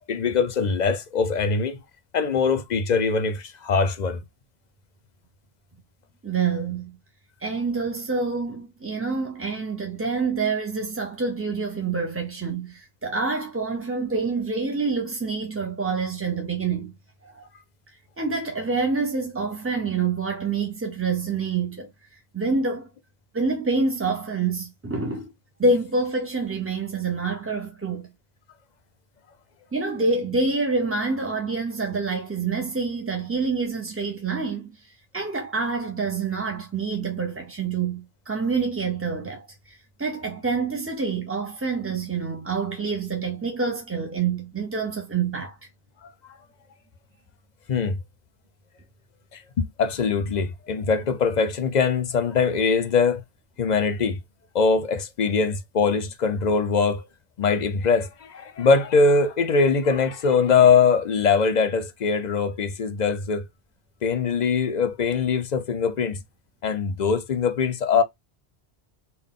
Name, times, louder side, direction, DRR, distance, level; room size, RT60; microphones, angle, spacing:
voice 1, 0.0-1.8 2.1-4.2 46.0-46.3 47.7-48.0 49.3-49.4 49.8-53.2 53.6-54.2 54.5-57.1 57.4-63.4 64.0-66.2 66.6-68.0, left 5 dB, 50° left, 0.6 m, -22 dB
voice 2, 6.2-7.0 7.4-16.9 17.2-17.5 18.2-22.9 23.3-25.3 25.6-28.1 29.7-45.6, right 4 dB, 20° right, 0.4 m, -27 dB
3.8 x 2.2 x 3.5 m
omnidirectional pair, 1.1 m